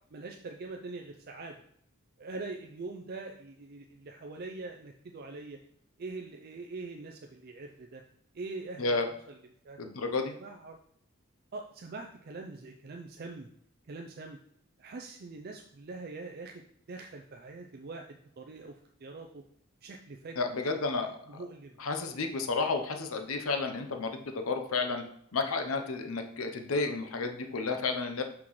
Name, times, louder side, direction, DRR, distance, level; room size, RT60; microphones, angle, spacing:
voice 1, 0.1-1.6 2.2-5.6 6.0-8.0 8.3-9.4 9.6-9.8 10.4-10.8 11.5-13.5 13.9-14.4 14.8-16.6 16.9-19.4 19.8-20.4 21.3-21.8, right 3 dB, 50° right, 2 dB, 0.4 m, -43 dB
voice 2, 9.8-10.3 20.4-21.4 21.8-25.0 25.3-28.2, left 4 dB, 85° left, 5 dB, 0.7 m, -31 dB
6.0 x 5.9 x 3.1 m, 0.68 s
head